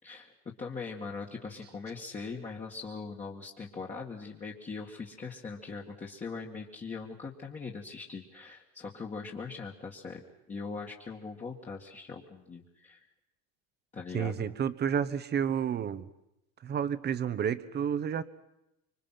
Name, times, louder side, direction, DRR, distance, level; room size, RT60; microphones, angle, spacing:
voice 1, 0.0-13.1 13.9-14.4, left 4 dB, 20° left, -2 dB, 2.1 m, -41 dB
voice 2, 14.1-16.1 16.6-18.2, right 8 dB, 30° right, 13 dB, 1.2 m, -30 dB
26.0 x 25.0 x 5.9 m, 0.86 s
cardioid pair, 140°, 32 cm